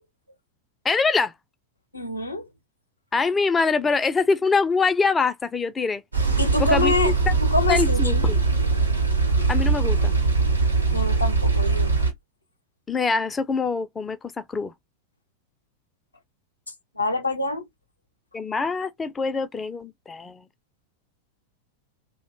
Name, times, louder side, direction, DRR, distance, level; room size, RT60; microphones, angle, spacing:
voice 1, 0.8-1.3 3.1-6.0 6.6-7.3 7.7-8.4 9.5-10.1 12.9-14.7 18.3-20.4, left 4 dB, 15° left, 0.3 m, -24 dB
voice 2, 1.9-2.5 6.4-7.1 7.4-8.3 10.9-11.9 17.0-17.6, left 3 dB, 85° left, 0.5 m, -25 dB
sound 1, 6.1-12.1, right 4 dB, 85° right, 0.8 m, -21 dB
2.5 x 2.1 x 2.8 m
figure-of-eight pair, 90°, 0 cm